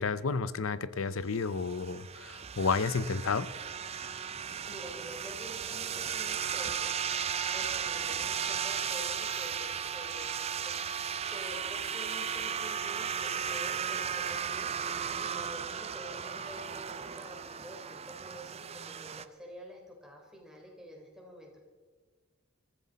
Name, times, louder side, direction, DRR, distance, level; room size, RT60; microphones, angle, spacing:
voice 1, 0.0-3.5, left 4 dB, 70° left, 15 dB, 0.7 m, -31 dB
sound 1, 1.3-19.3, right 7 dB, 30° right, 0.5 m, -35 dB
voice 2, 4.6-6.9 7.5-21.6, equal, 5° right, -1 dB, 3.6 m, -48 dB
23.0 x 14.5 x 4.1 m, 1.4 s
head